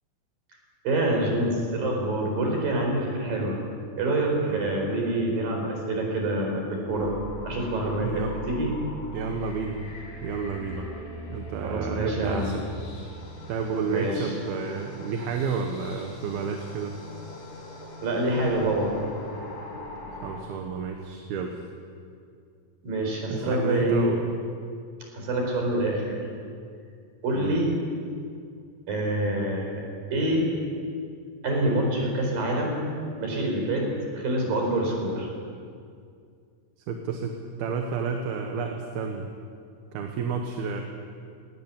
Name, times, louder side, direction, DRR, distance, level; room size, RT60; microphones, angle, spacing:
voice 1, 0.8-3.6 4.0-7.1 7.4-8.7 11.6-12.6 13.9-14.4 18.0-19.1 22.8-24.1 25.1-26.2 27.2-27.7 28.9-30.5 31.4-32.9 33.2-35.3, right 1 dB, 65° right, 1 dB, 6.2 m, -26 dB
voice 2, 4.4-4.7 8.0-8.3 9.1-9.8 10.2-10.8 11.3-12.5 13.5-17.0 20.2-21.6 23.3-24.3 27.3-27.7 36.9-39.3 39.9-40.8, right 5 dB, 80° right, 3 dB, 3.3 m, -30 dB
sound 1, 6.9-20.4, left 1 dB, 90° left, 7.2 m, -40 dB
19.5 x 18.5 x 10.0 m, 2.3 s
omnidirectional pair, 4.3 m